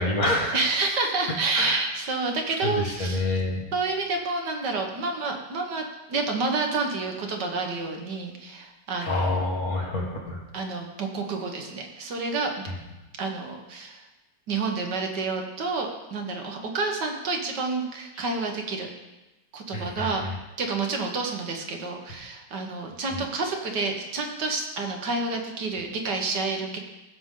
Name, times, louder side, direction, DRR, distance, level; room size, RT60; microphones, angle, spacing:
voice 1, 0.0-0.6 1.5-1.8 2.6-3.6 9.0-10.4 19.7-20.3, left 1 dB, 50° left, -1 dB, 2.1 m, -27 dB
voice 2, 0.5-3.2 3.7-9.3 10.5-12.5 13.2-14.0 14.5-18.9 19.5-20.2 20.6-26.8, right 3 dB, 65° right, 3 dB, 1.8 m, -29 dB
16.0 x 6.8 x 3.8 m, 1.0 s
omnidirectional pair, 2.0 m